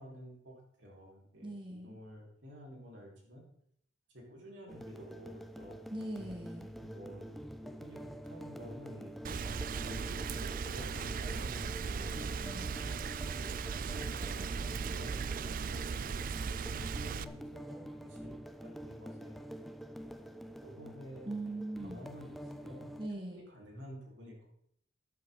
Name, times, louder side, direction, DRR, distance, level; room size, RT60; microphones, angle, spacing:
voice 1, 0.0-3.4 4.1-5.8 6.8-12.3 13.3-18.3 18.6-19.4 20.1-20.3 20.6-21.3 21.8-24.5, equal, 70° right, -2 dB, 4.7 m, -51 dB
voice 2, 1.4-2.0 5.9-6.7 12.4-12.8 21.2-22.1 23.0-23.4, right 1 dB, 25° right, 0 dB, 1.6 m, -41 dB
sound 1, 4.7-23.1, equal, ahead, 0.6 m, -47 dB
Rain, 9.2-17.2, right 5 dB, 45° right, 0.4 m, -37 dB
13.5 x 11.0 x 3.9 m, 0.67 s
head